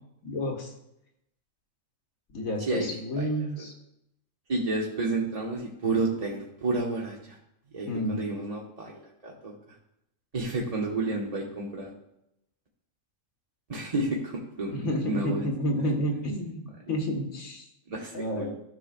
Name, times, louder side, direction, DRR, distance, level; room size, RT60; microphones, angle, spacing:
voice 1, 0.2-0.7 2.3-3.7 7.9-8.2 14.7-17.7 18.1-18.5, equal, 85° left, 1 dB, 1.7 m, -30 dB
voice 2, 4.5-7.4 7.7-9.5 10.3-11.9 13.7-15.5 17.9-18.5, right 2 dB, 30° right, -3 dB, 0.9 m, -30 dB
13.0 x 5.6 x 2.5 m, 0.82 s
omnidirectional pair, 1.4 m